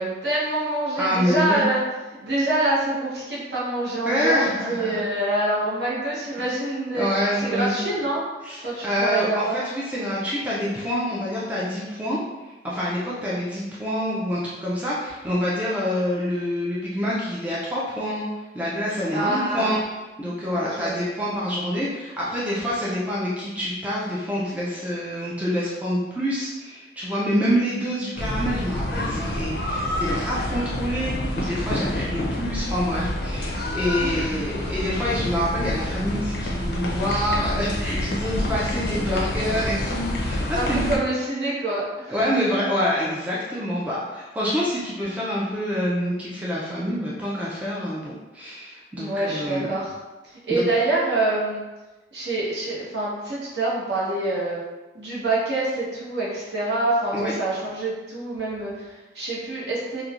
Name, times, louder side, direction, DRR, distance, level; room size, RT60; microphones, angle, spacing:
voice 1, 0.0-1.8 2.2-4.4 4.7-7.1 7.4-8.2 8.6-9.6 19.1-19.8 20.5-21.0 34.0-34.4 40.5-42.2 49.0-49.9 50.5-51.6 52.1-54.6 54.9-60.0, right 2 dB, 65° right, -7 dB, 0.9 m, -26 dB
voice 2, 1.0-1.7 4.1-5.0 6.4-6.5 6.9-7.8 8.4-12.2 12.4-18.3 18.5-19.8 20.2-40.8 42.1-49.7 50.5-50.6 57.1-57.3, equal, 10° right, -7 dB, 0.3 m, -26 dB
sound 1, 28.2-41.0, left 1 dB, 55° left, 0.4 m, -28 dB
3.0 x 2.1 x 2.4 m, 1.1 s
head